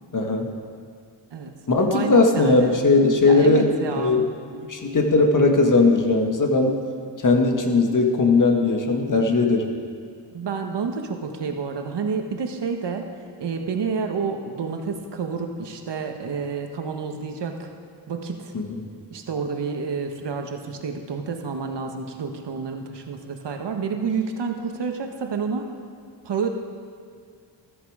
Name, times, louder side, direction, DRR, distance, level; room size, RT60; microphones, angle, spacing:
voice 1, 0.1-0.5 1.7-4.3 4.7-6.8 7.2-9.7 18.5-18.8, left 3 dB, 45° left, 2 dB, 1.8 m, -19 dB
voice 2, 1.9-2.8 3.2-4.1 10.3-13.1 13.4-17.7 18.1-18.5 19.1-25.7 26.2-26.5, right 5 dB, 65° right, 4 dB, 1.5 m, -29 dB
13.5 x 13.0 x 5.0 m, 2.2 s
cardioid pair, 80°, 45 cm